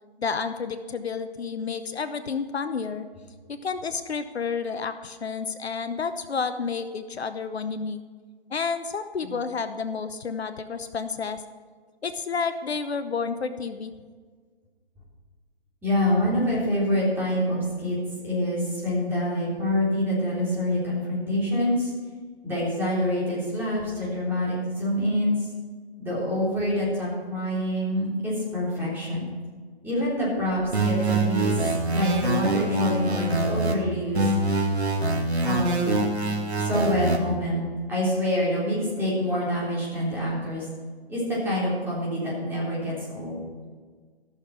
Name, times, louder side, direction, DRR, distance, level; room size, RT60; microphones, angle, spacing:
voice 1, 0.2-3.1 3.5-8.0 8.5-11.4 12.0-13.9, left 5 dB, 75° left, 10 dB, 0.8 m, -30 dB
voice 2, 15.8-18.0 18.2-21.9 22.4-25.5 26.0-29.3 29.8-34.3 35.4-36.1 36.5-40.7 41.1-43.4, left 1 dB, 5° right, -7 dB, 3.6 m, -26 dB
sound 1, 30.7-33.7 34.1-37.2, right 2 dB, 90° right, 2.1 m, -24 dB
15.5 x 6.7 x 6.0 m, 1.6 s
figure-of-eight pair, 145°, 32 cm